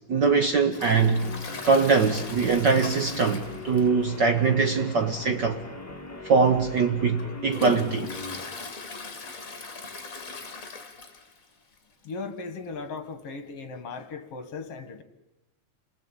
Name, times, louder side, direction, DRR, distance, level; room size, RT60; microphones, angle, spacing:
voice 1, 0.1-1.3 1.6-5.6 6.2-8.1, right 5 dB, 75° right, 1.0 m, -22 dB
Toilet flush, 0.7-4.1 4.4-4.5 4.9-5.0 5.9-6.0 6.5-11.5 11.8-11.9 12.0-12.1 13.2-13.3, left 2 dB, 25° left, 2.5 m, -38 dB
Guitar, 1.1-8.5, left 2 dB, 5° left, 1.6 m, -41 dB
voice 2, 12.0-15.0, left 4 dB, 50° left, 2.5 m, -37 dB
28.0 x 19.0 x 8.9 m
omnidirectional pair, 3.8 m